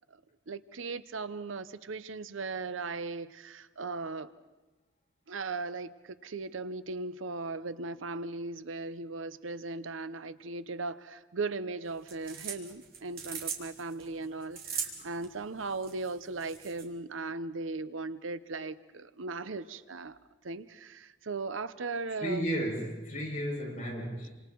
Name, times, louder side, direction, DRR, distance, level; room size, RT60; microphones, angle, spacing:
voice 1, 0.5-4.3 5.3-20.2 20.4-22.5, right 3 dB, 85° right, 14 dB, 0.8 m, -38 dB
sound 1, 11.9-16.9, right 6 dB, 50° right, 2.9 m, -41 dB
voice 2, 22.2-24.3, equal, 35° left, -3 dB, 7.0 m, -33 dB
28.0 x 26.0 x 4.6 m, 1.1 s
head